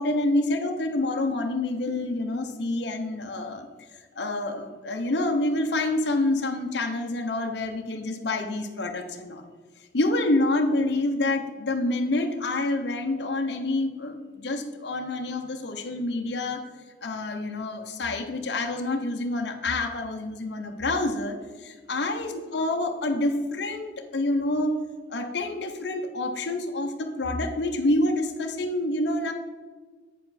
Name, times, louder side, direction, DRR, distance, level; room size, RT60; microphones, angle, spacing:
voice 1, 0.0-3.7 4.2-9.4 9.9-16.7 17.0-24.8 25.1-29.3, left 2 dB, 60° left, 4 dB, 0.7 m, -27 dB
8.2 x 6.8 x 4.1 m, 1.4 s
head